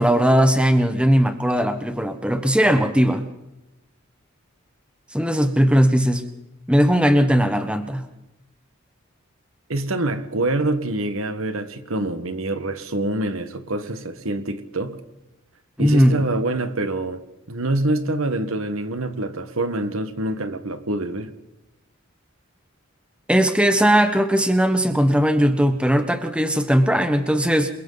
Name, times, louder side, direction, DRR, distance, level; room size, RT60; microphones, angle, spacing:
voice 1, 0.0-3.2 5.1-6.2 6.7-8.1 15.8-16.2 23.3-27.7, equal, 5° right, 1.3 m, -18 dB
voice 2, 9.7-15.0 15.8-17.2 17.5-21.3, right 2 dB, 70° right, 1.6 m, -25 dB
28.5 x 22.5 x 4.1 m
head